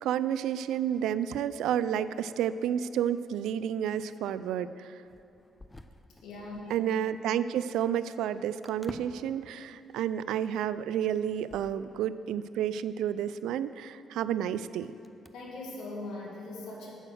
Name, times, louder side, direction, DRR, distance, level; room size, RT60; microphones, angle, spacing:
voice 1, 0.0-5.0 6.7-14.9, right 9 dB, 85° right, 15 dB, 0.3 m, -30 dB
sound 1, 5.0-6.8 7.2-7.3 8.6-9.4 9.9-10.0 10.3-12.4 13.3-13.4 15.0-15.4, left 1 dB, 15° left, 0.5 m, -49 dB
voice 2, 6.2-6.6 15.3-16.9, left 2 dB, 85° left, -2 dB, 2.0 m, -40 dB
8.9 x 7.9 x 6.2 m, 2.6 s
cardioid pair, 90°, 0 cm